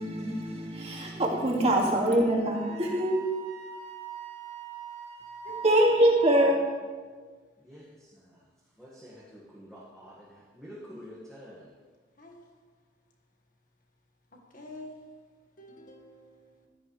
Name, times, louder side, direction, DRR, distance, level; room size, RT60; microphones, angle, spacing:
voice 1, 0.0-3.1 5.6-6.6, right 1 dB, 30° right, 2.3 m, -24 dB
Wind instrument woodwind instrument, 2.5-6.5, right 6 dB, 55° right, 3.0 m, -41 dB
voice 2, 5.4-6.4 12.2-12.4 14.5-15.1 15.6-16.6, equal, 45° left, 1.8 m, -45 dB
voice 3, 7.6-8.4 8.8-11.7, equal, 5° left, 1.9 m, -48 dB
15.5 x 13.0 x 3.4 m
head